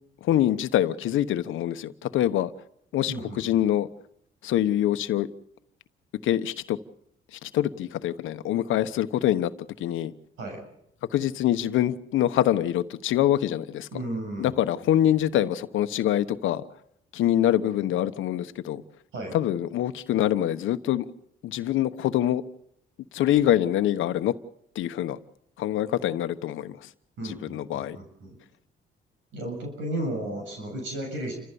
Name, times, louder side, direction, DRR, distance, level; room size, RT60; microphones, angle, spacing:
voice 1, 0.2-2.5 2.9-3.9 4.4-5.3 6.2-6.8 7.3-9.5 9.8-10.1 11.1-14.0 14.4-16.6 17.1-18.8 19.3-21.0 21.4-22.4 23.1-24.3 24.7-25.2 25.6-26.9 27.2-28.0, left 12 dB, 80° left, 11 dB, 1.1 m, -25 dB
voice 2, 3.1-3.6 10.4-10.7 13.9-14.6 19.1-19.4 27.2-28.4 29.3-31.4, right 1 dB, 75° right, 1 dB, 7.7 m, -34 dB
29.5 x 15.0 x 7.0 m, 0.74 s
cardioid pair, 90°, 20 cm